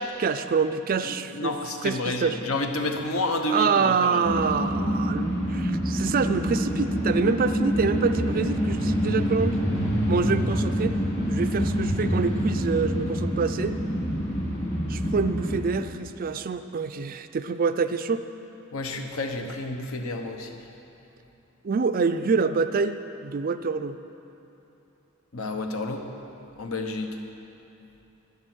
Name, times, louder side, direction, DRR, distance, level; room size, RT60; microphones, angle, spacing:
voice 1, 0.2-1.6 1.8-2.4 3.5-9.7 10.1-11.0 11.3-13.8 14.9-18.2 21.6-24.0, right 5 dB, 40° right, 10 dB, 0.4 m, -26 dB
voice 2, 1.0-4.4 18.7-20.5 25.3-26.0 26.6-27.1, left 2 dB, 70° left, 4 dB, 1.0 m, -30 dB
sound 1, 4.2-15.6, equal, 30° left, 2.5 m, -26 dB
12.0 x 9.7 x 6.2 m, 2.9 s
head